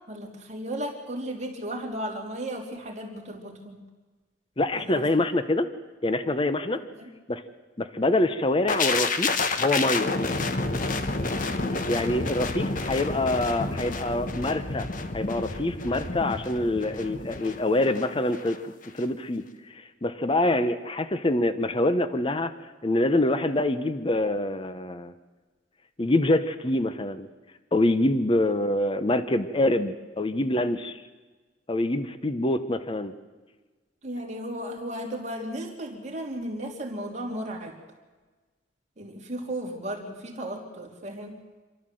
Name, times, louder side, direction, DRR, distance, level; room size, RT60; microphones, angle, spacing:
voice 1, 0.1-3.8 4.7-5.1 7.0-7.1 12.0-12.3 34.0-37.8 39.0-41.4, right 1 dB, 40° right, 0 dB, 3.2 m, -35 dB
voice 2, 4.6-5.7 6.0-6.8 7.3-7.4 7.8-9.3 9.6-10.1 11.9-14.9 15.1-19.4 19.7-22.5 22.8-25.1 26.0-27.3 27.7-31.0 31.7-33.1, left 1 dB, 30° left, 11 dB, 0.8 m, -25 dB
sound 1, 8.7-18.6 18.8-19.0, left 3 dB, 45° left, 1.2 m, -30 dB
27.5 x 12.5 x 7.7 m, 1.3 s
head